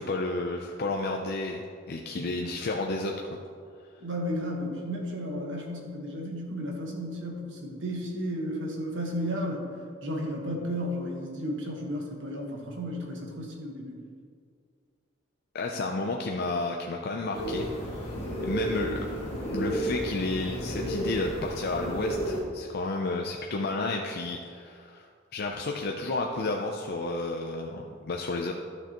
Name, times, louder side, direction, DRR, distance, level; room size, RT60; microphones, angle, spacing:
voice 1, 0.0-3.1 15.5-17.7 18.4-19.0 19.5-28.5, left 2 dB, 55° left, 1 dB, 0.5 m, -31 dB
voice 2, 4.0-9.6 10.0-14.0, equal, 70° right, 0 dB, 1.4 m, -33 dB
sound 1, 17.3-22.4, right 1 dB, 30° left, 1.9 m, -32 dB
11.5 x 6.7 x 3.0 m, 2.2 s
head